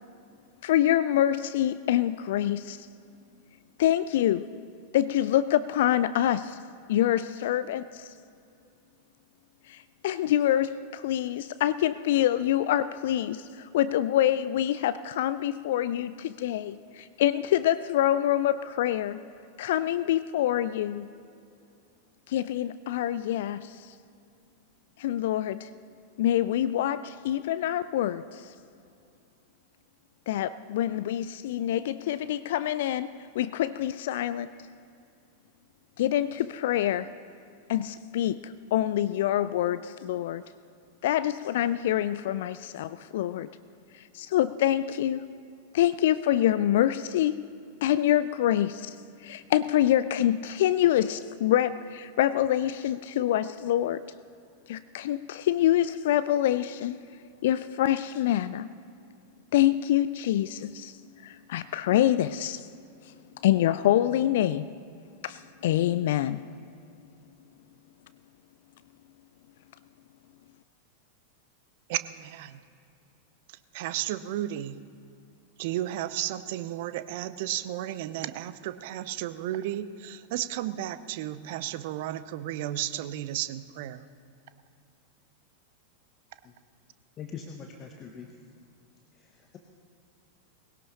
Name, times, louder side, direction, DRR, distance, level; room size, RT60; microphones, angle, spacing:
voice 1, 0.6-2.9 3.8-4.5 4.9-6.6 6.9-8.1 9.7-19.2 19.6-21.1 22.3-23.9 25.0-25.7 26.2-28.5 30.3-34.5 36.0-37.1 37.7-40.4 41.0-43.5 43.9-45.3 45.7-47.4 47.8-49.0 49.2-54.0 54.7-57.0 57.4-58.7 59.5-62.7 63.4-64.7 65.2-66.4, left 12 dB, 55° left, 15 dB, 0.3 m, -26 dB
voice 2, 71.9-72.6 73.7-74.8 75.6-84.0, right 13 dB, 50° right, 14 dB, 0.6 m, -33 dB
voice 3, 87.2-88.4 89.1-89.6, left 6 dB, 30° left, 3 dB, 1.0 m, -43 dB
20.5 x 17.0 x 2.9 m, 2.5 s
figure-of-eight pair, 90°, 0 cm